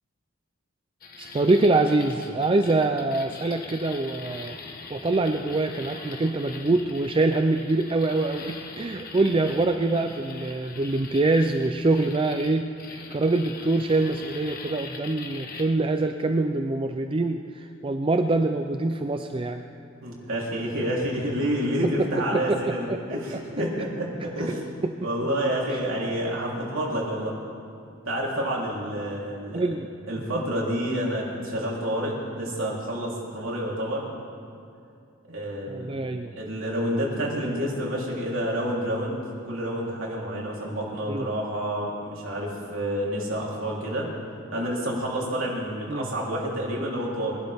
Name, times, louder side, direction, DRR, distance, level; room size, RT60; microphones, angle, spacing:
sound 1, 1.0-15.7, left 4 dB, 45° left, 1.4 m, -42 dB
voice 1, 1.2-4.6 4.9-19.7 21.8-23.0 23.3-23.4 24.8-25.1 29.5-29.9 30.3-30.4 35.7-36.3 41.1-41.3 45.9-46.1, right 2 dB, 25° right, 6 dB, 0.4 m, -25 dB
voice 2, 20.0-24.6 25.0-27.3 28.1-29.7 30.1-34.0 35.3-36.1 36.4-44.1 44.5-47.4, equal, 75° right, -4 dB, 3.6 m, -29 dB
24.0 x 12.0 x 3.6 m, 2.4 s
head